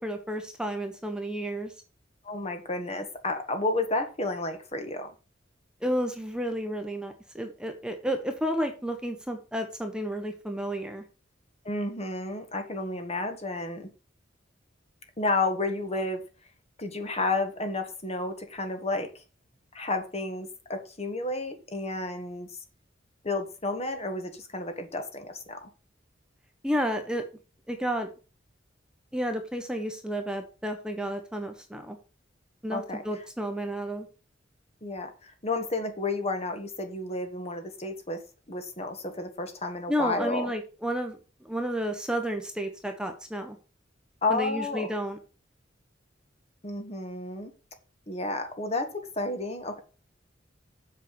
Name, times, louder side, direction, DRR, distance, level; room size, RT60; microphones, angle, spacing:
voice 1, 0.0-1.7 5.8-11.0 26.6-27.2 27.7-28.1 29.1-32.0 32.6-34.1 39.9-43.6 44.3-45.2, equal, 5° right, 5 dB, 1.2 m, -31 dB
voice 2, 2.2-5.1 11.6-13.9 15.2-16.2 16.8-19.1 19.7-22.5 23.2-25.7 32.7-33.0 34.8-38.2 38.5-40.5 44.2-44.9 46.6-47.5 48.1-49.8, left 2 dB, 35° left, 6 dB, 1.6 m, -31 dB
7.5 x 5.8 x 6.9 m, 0.34 s
head